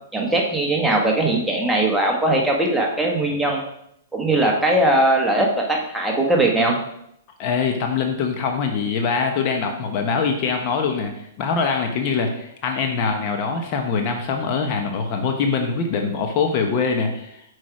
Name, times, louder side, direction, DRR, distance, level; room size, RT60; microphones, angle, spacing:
voice 1, 0.1-3.6 4.1-6.7, right 1 dB, 5° right, -1 dB, 1.3 m, -20 dB
voice 2, 7.4-17.4, left 5 dB, 40° left, 4 dB, 1.1 m, -23 dB
6.2 x 4.7 x 4.7 m, 0.76 s
hypercardioid pair, 130°, 0 cm